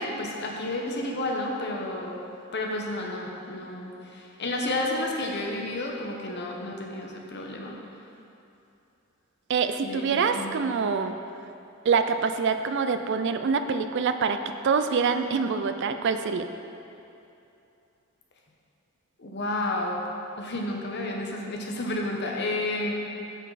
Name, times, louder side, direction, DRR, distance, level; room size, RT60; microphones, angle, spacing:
voice 1, 0.0-2.2 2.5-7.8 9.8-10.8 19.2-20.0 20.4-22.9, left 1 dB, 55° left, 0 dB, 1.0 m, -31 dB
voice 2, 9.5-11.1 11.9-16.5, right 5 dB, 55° right, 9 dB, 0.4 m, -25 dB
8.2 x 6.6 x 4.1 m, 2.8 s
head